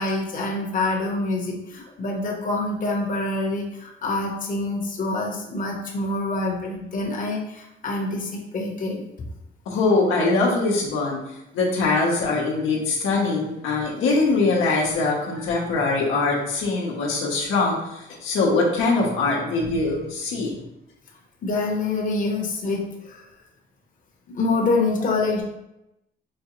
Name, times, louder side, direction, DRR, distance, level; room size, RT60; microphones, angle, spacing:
voice 1, 0.0-9.0 13.1-13.2 21.4-23.2 24.3-25.4, left 2 dB, 40° left, -1 dB, 0.9 m, -26 dB
voice 2, 9.7-11.2 11.5-20.6, left 3 dB, 85° left, -3 dB, 0.9 m, -22 dB
5.0 x 2.3 x 2.9 m, 0.89 s
cardioid pair, 90°, 20 cm